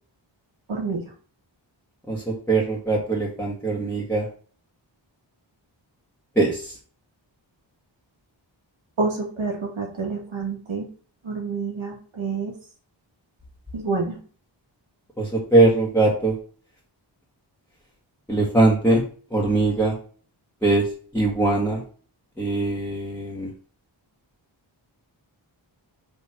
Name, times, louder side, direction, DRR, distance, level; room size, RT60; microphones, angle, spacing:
voice 1, 0.7-1.0 9.0-10.9 11.2-12.5 13.7-14.2, right 4 dB, 90° right, 0 dB, 2.4 m, -28 dB
voice 2, 2.5-4.3 6.3-6.7 15.2-16.3 18.3-19.0 19.3-19.9 20.6-20.8 21.1-21.8 22.4-23.5, right 2 dB, 5° left, -5 dB, 1.7 m, -21 dB
5.3 x 4.5 x 6.0 m, 0.42 s
wide cardioid pair, 100°, 46 cm